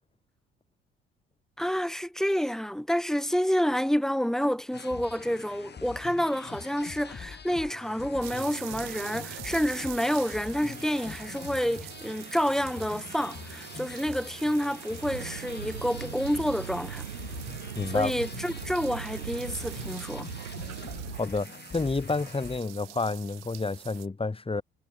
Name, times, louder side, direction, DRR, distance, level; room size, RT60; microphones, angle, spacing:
voice 1, 1.6-17.1 17.9-20.3, equal, ahead, 0.5 m, -29 dB
sound 1, 4.7-22.6, left 6 dB, 35° left, 3.8 m, -44 dB
sound 2, 8.2-24.1, right 20 dB, 60° right, 3.2 m, -44 dB
sound 3, 15.0-21.2, right 8 dB, 85° right, 3.4 m, -40 dB
voice 2, 17.7-18.1 21.1-24.6, left 3 dB, 20° left, 3.0 m, -30 dB
figure-of-eight pair, 50°, 29 cm